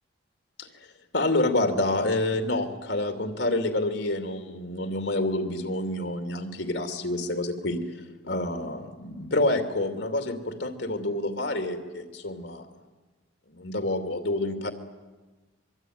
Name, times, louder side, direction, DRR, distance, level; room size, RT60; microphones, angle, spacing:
voice 1, 1.1-12.7 13.5-14.7, left 2 dB, 75° left, 6 dB, 2.8 m, -28 dB
24.5 x 23.5 x 9.5 m, 1.2 s
head